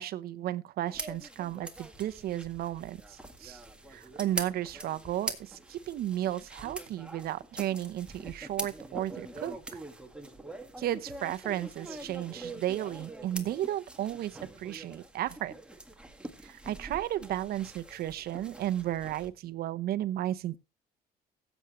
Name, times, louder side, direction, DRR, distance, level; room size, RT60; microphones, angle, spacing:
voice 1, 0.0-3.6 3.9-9.8 10.8-15.5 16.4-20.6, right 12 dB, 65° right, 0.8 m, -34 dB
sound 1, 0.9-19.3, right 2 dB, 5° right, 1.7 m, -43 dB
16.0 x 8.2 x 3.1 m
cardioid pair, 110°, 17 cm